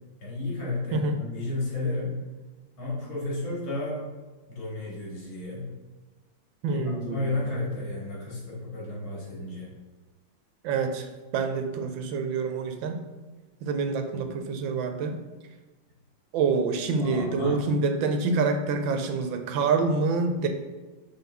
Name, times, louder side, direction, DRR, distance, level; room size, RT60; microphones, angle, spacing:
voice 1, 0.2-2.1 2.8-4.0 4.5-5.7 6.7-9.7 14.2-14.4 17.0-17.6, left 2 dB, 75° left, -5 dB, 2.9 m, -32 dB
voice 2, 6.6-7.4 10.6-11.1 11.3-13.0 13.6-15.2 16.3-20.5, right 4 dB, 80° right, 6 dB, 1.4 m, -26 dB
5.8 x 4.1 x 4.0 m, 1.3 s
omnidirectional pair, 2.2 m